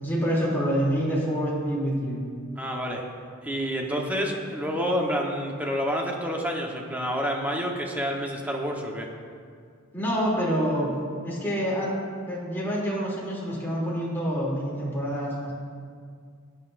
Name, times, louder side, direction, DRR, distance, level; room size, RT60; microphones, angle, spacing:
voice 1, 0.0-2.2 9.9-10.9 11.2-11.9 12.3-15.5, equal, 10° left, -7 dB, 2.9 m, -27 dB
voice 2, 2.6-3.0 3.4-9.1, equal, 10° right, -1 dB, 1.1 m, -28 dB
16.5 x 9.4 x 2.6 m, 2.1 s
head